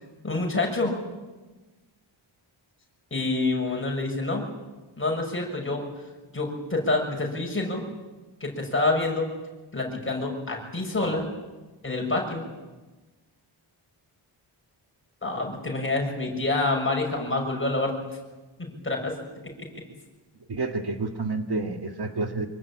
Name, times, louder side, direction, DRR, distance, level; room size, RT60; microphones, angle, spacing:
voice 1, 0.2-1.0 3.1-4.5 5.0-5.8 6.3-7.9 8.4-9.3 9.7-11.3 11.8-12.5 15.2-17.9 18.6-19.2 19.4-19.7, left 2 dB, 25° left, 1 dB, 6.6 m, -27 dB
voice 2, 20.5-22.5, right 3 dB, 50° right, 5 dB, 1.9 m, -29 dB
25.5 x 23.0 x 8.9 m, 1.2 s
wide cardioid pair, 135°, 49 cm